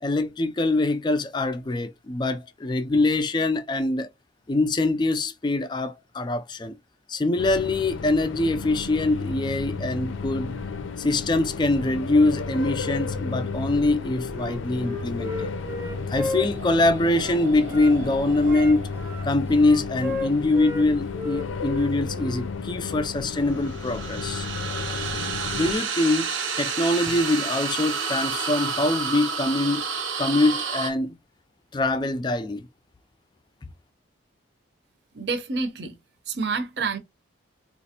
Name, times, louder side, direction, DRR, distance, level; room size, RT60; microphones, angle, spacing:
voice 1, 0.0-4.1 4.5-6.8 7.1-10.5 11.0-15.5 16.1-18.9 19.2-24.5 25.6-26.3 26.6-29.8 30.2-31.2 31.7-32.7, left 2 dB, 25° left, 0.3 m, -24 dB
sound 1, 7.4-25.7, left 4 dB, 85° left, 0.5 m, -33 dB
Wind instrument woodwind instrument, 14.3-18.0 18.4-20.9 21.1-22.5, left 3 dB, 10° right, 0.6 m, -34 dB
sound 2, 15.7-20.9 23.4-30.9, right 5 dB, 90° right, 1.0 m, -31 dB
voice 2, 35.1-36.0 36.3-37.0, right 4 dB, 60° right, 0.7 m, -28 dB
3.9 x 2.5 x 2.8 m
head